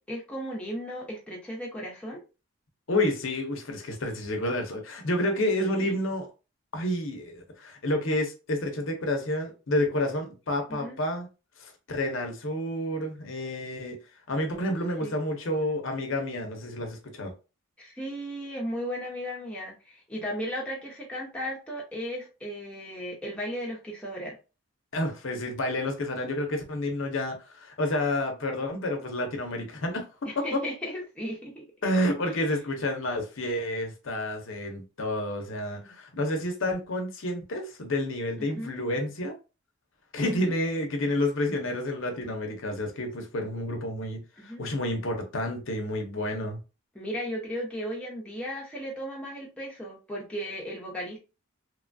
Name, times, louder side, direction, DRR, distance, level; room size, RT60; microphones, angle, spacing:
voice 1, 0.0-2.2 5.6-5.9 10.7-11.0 15.0-15.1 17.8-24.4 30.2-31.7 32.2-32.5 35.7-35.9 38.4-38.7 40.2-40.5 44.4-44.6 46.9-51.2, equal, 5° left, 0.8 m, -36 dB
voice 2, 2.9-6.3 6.7-11.3 11.6-14.0 14.3-17.3 24.9-30.1 30.4-30.6 31.8-39.4 40.1-46.6, left 1 dB, 60° left, 0.7 m, -29 dB
3.0 x 2.2 x 2.5 m
head